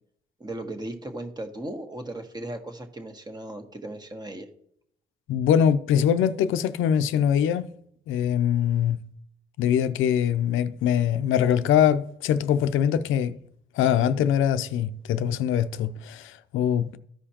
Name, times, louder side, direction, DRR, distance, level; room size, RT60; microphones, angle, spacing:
voice 1, 0.4-4.5, right 1 dB, 20° right, 1.4 m, -36 dB
voice 2, 5.3-7.7 8.1-9.0 9.6-13.4 13.7-17.0, left 9 dB, 85° left, 0.6 m, -23 dB
14.0 x 5.0 x 2.9 m
cardioid pair, 90°, 20 cm